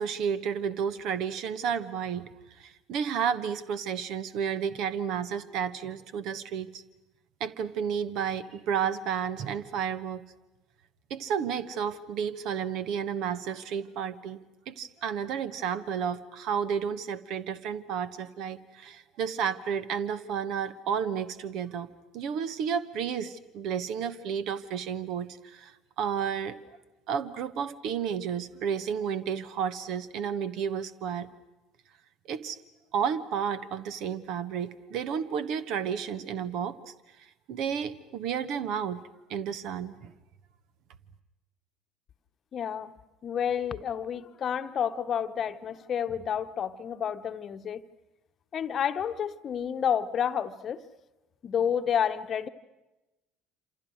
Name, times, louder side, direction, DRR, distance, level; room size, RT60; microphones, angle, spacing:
voice 1, 0.0-6.8 7.4-10.2 11.1-14.4 14.7-21.9 22.1-26.6 27.1-31.3 32.3-32.6 32.9-36.9 37.5-39.0 39.3-40.1, right 7 dB, 60° right, 1.3 m, -32 dB
voice 2, 42.5-42.9 43.2-47.8 48.5-50.8 51.4-52.5, left 8 dB, 45° left, 1.0 m, -30 dB
27.5 x 27.0 x 6.4 m
hypercardioid pair, 65°, 0 cm